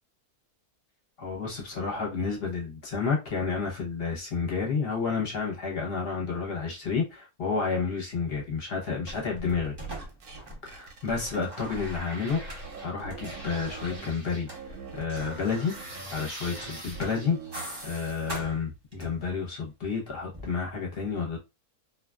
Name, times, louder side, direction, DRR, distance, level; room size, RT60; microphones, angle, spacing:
voice 1, 1.2-9.7 10.6-15.7 16.1-17.4 17.8-21.4, left 5 dB, 50° left, 0.9 m, -30 dB
sound 1, 9.1-10.8 11.1-14.6 14.9-19.3 20.3-20.5, right 1 dB, 30° right, 0.5 m, -43 dB
sound 2, 9.1-12.0 12.3-14.1 14.5-18.2, right 3 dB, 80° right, 1.3 m, -42 dB
2.6 x 2.3 x 2.2 m
omnidirectional pair, 1.6 m